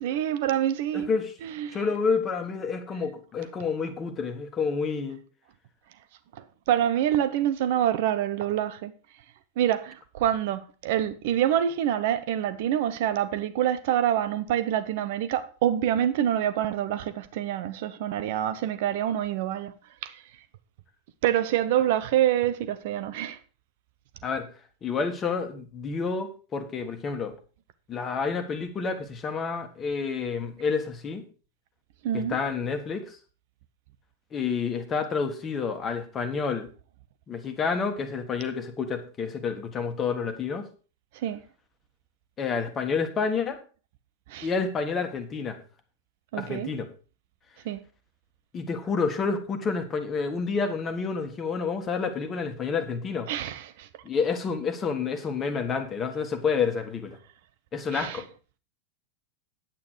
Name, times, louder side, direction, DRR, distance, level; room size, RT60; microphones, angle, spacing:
voice 1, 0.0-1.1 1.4-1.8 6.3-8.9 9.6-19.7 20.0-20.2 21.2-23.4 32.0-32.4 41.1-41.4 44.3-44.5 46.3-46.7 47.6-47.8 53.3-53.9 57.9-58.2, right 11 dB, 50° right, 0.7 m, -26 dB
voice 2, 0.9-1.3 1.7-5.2 24.2-24.5 24.8-27.4 27.9-31.2 32.1-33.2 34.3-36.7 37.3-40.6 42.4-43.6 44.4-45.6 46.4-46.9 48.5-53.3 54.0-57.2 57.7-58.2, left 5 dB, 25° left, 1.6 m, -29 dB
9.2 x 8.6 x 4.7 m
figure-of-eight pair, 90°, 0 cm